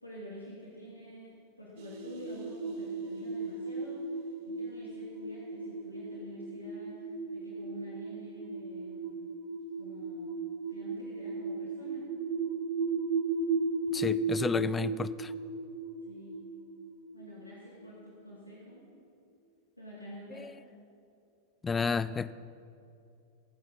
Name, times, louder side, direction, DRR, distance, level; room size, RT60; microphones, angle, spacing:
voice 1, 0.0-4.2 4.4-7.0 7.3-9.1 9.8-10.3 10.7-12.0 16.1-16.4 17.1-18.8 19.8-20.5, equal, 90° left, -7 dB, 2.7 m, -48 dB
sound 1, 1.8-18.1, right 3 dB, 50° right, 1.4 m, -36 dB
voice 2, 13.9-15.3 20.4-20.5 21.6-22.3, left 5 dB, 15° left, 16 dB, 0.4 m, -31 dB
24.5 x 8.5 x 4.1 m, 2.6 s
figure-of-eight pair, 90°, 0 cm